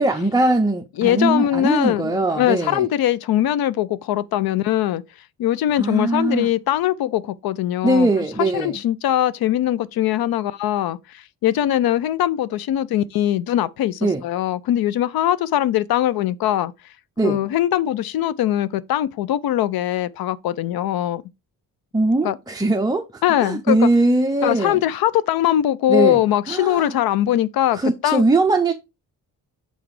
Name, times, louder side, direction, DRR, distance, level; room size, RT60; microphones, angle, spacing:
voice 1, 0.0-2.9 5.8-6.5 7.8-8.8 14.0-14.2 17.2-17.5 21.9-24.8 25.9-26.2 26.5-27.0 27.7-28.7, right 2 dB, 10° right, 0.5 m, -20 dB
voice 2, 1.0-5.0 5.4-8.1 8.5-16.7 17.2-21.2 22.2-22.4 23.2-23.9 24.4-28.2, left 12 dB, 85° left, 0.5 m, -21 dB
5.9 x 4.0 x 4.7 m
cardioid pair, 140°, 35 cm